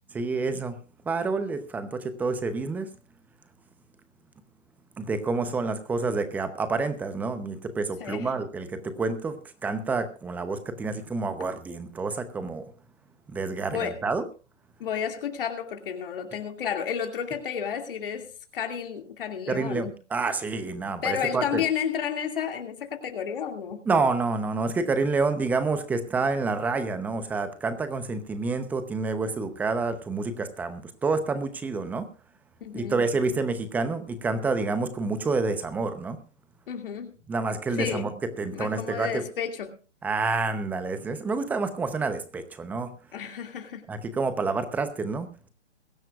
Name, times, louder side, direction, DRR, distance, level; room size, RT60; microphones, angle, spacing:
voice 1, 0.1-0.8 1.0-2.9 5.0-12.7 13.3-14.2 19.5-21.6 23.9-32.1 32.7-36.2 37.3-38.1 38.4-39.2 40.0-42.9 43.9-45.5, right 3 dB, 5° right, 11 dB, 0.8 m, -28 dB
voice 2, 8.0-8.3 13.7-14.0 14.8-19.9 21.0-23.8 32.6-33.0 36.7-37.1 37.7-38.1 38.5-39.8 43.1-43.8, left 8 dB, 50° left, 4 dB, 2.5 m, -31 dB
22.5 x 12.0 x 2.5 m, 0.35 s
hypercardioid pair, 145°, 36 cm